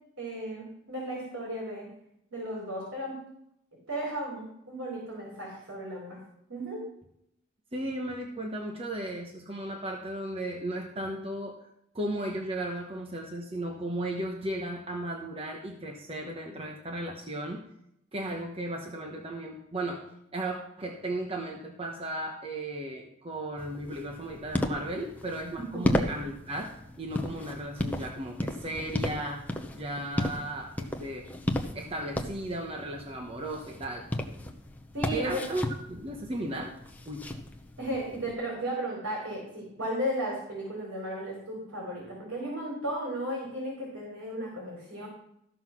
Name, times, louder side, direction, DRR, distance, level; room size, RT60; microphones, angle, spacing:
voice 1, 0.2-1.9 2.3-3.1 3.9-6.2 6.5-6.8 25.7-26.0 34.9-35.4 37.8-45.1, equal, 90° right, -3 dB, 4.7 m, -35 dB
voice 2, 7.7-11.6 11.9-17.6 18.1-20.1 20.3-31.3 31.7-34.1 35.1-36.7 37.1-37.3, right 1 dB, 30° right, 2 dB, 1.0 m, -35 dB
sound 1, 23.6-38.3, left 1 dB, 10° left, 0.8 m, -35 dB
13.5 x 5.8 x 6.1 m, 0.77 s
head